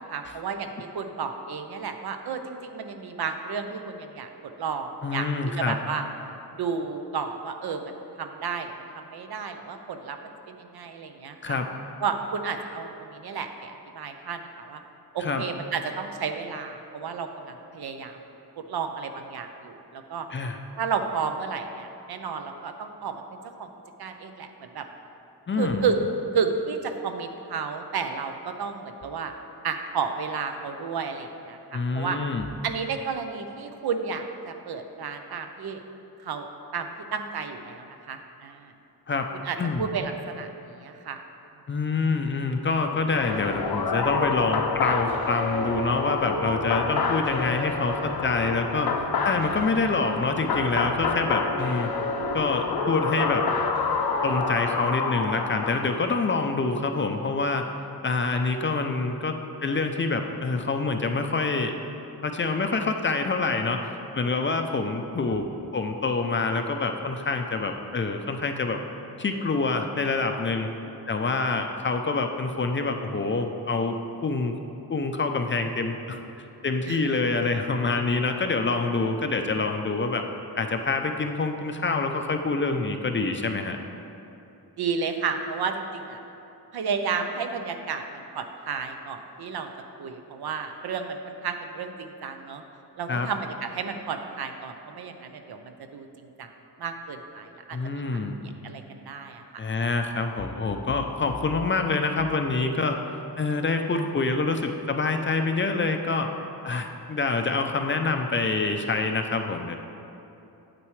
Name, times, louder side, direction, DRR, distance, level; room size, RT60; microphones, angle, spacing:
voice 1, 0.0-4.3 4.6-5.3 5.6-6.0 6.5-11.6 12.0-14.8 15.1-18.2 18.6-20.3 20.8-23.7 24.0-24.9 25.6-26.0 26.3-29.3 29.6-32.2 32.6-35.8 36.2-36.5 36.7-38.7 39.4-41.2 76.9-77.2 84.8-86.2 86.7-89.7 90.0-92.6 93.0-96.5 96.8-98.0 98.4-99.6, right 5 dB, 75° right, 6 dB, 0.7 m, -32 dB
voice 2, 5.0-5.8 11.4-11.7 15.2-15.4 20.3-20.6 25.5-25.9 31.7-32.5 39.1-39.3 39.6-39.9 41.7-48.9 49.2-51.9 52.3-53.4 54.2-57.6 58.0-61.7 62.2-65.5 65.7-68.8 69.2-70.7 71.1-74.0 74.2-74.6 74.9-76.2 76.6-80.2 80.5-83.8 93.1-93.3 97.7-98.4 99.6-103.0 103.4-106.3 106.6-109.8, left 3 dB, 30° left, 5 dB, 0.4 m, -26 dB
sound 1, 43.2-56.1, left 4 dB, 70° left, 0.7 m, -28 dB
8.8 x 8.4 x 3.1 m, 2.9 s
wide cardioid pair, 155°, 38 cm